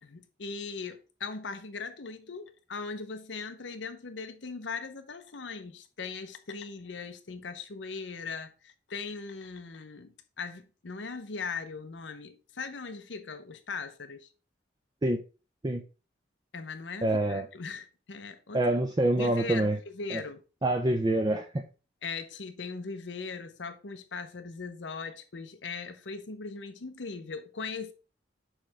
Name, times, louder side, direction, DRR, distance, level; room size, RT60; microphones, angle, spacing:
voice 1, 0.0-14.3 16.5-18.7 19.2-20.4 22.0-27.9, left 4 dB, 90° left, 0.8 m, -39 dB
voice 2, 17.0-17.5 18.5-19.8 20.1-20.2 20.6-21.6, right 1 dB, 25° right, 0.5 m, -26 dB
6.3 x 3.3 x 4.7 m
head